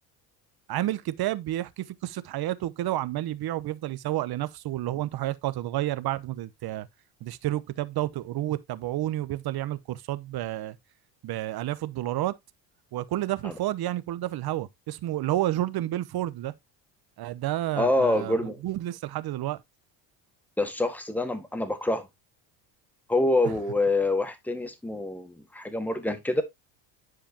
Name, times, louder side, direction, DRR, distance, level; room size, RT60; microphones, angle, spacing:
voice 1, 0.7-6.9 7.2-10.8 11.2-12.3 12.9-16.5 17.2-19.6 23.4-23.6, right 14 dB, 50° right, 0.9 m, -30 dB
voice 2, 17.8-18.6 20.6-22.1 23.1-26.4, left 2 dB, 5° left, 1.6 m, -26 dB
10.0 x 4.9 x 2.8 m
supercardioid pair, 85°, 49 cm